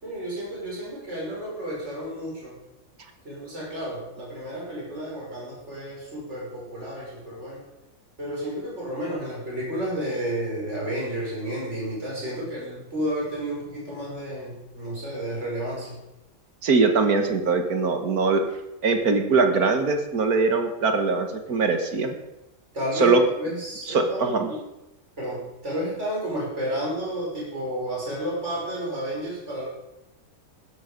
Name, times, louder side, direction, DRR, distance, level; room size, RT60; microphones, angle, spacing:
voice 1, 0.0-2.6 3.2-7.6 8.2-16.0 22.7-24.6 25.2-29.7, right 1 dB, 50° right, -5 dB, 6.3 m, -31 dB
voice 2, 16.6-18.4 18.8-22.2 23.0-23.2 23.9-24.5, right 4 dB, 80° right, 6 dB, 2.1 m, -22 dB
15.0 x 12.5 x 5.3 m, 0.93 s
omnidirectional pair, 1.5 m